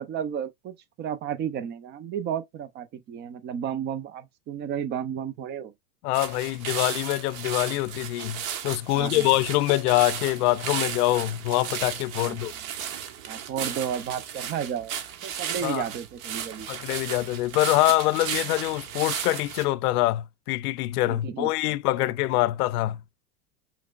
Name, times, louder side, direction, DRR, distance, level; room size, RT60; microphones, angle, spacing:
voice 1, 0.0-5.7 8.9-9.3 12.2-12.4 13.3-14.9 15.2-16.7 21.1-21.8 22.0-22.1, right 8 dB, 25° right, 0.4 m, -33 dB
voice 2, 6.0-12.5 15.6-15.8 16.7-23.0, left 17 dB, 70° left, 0.5 m, -25 dB
sound 1, 6.1-19.6, right 9 dB, 60° right, 1.1 m, -35 dB
5.8 x 2.1 x 2.4 m
hypercardioid pair, 115°, 48 cm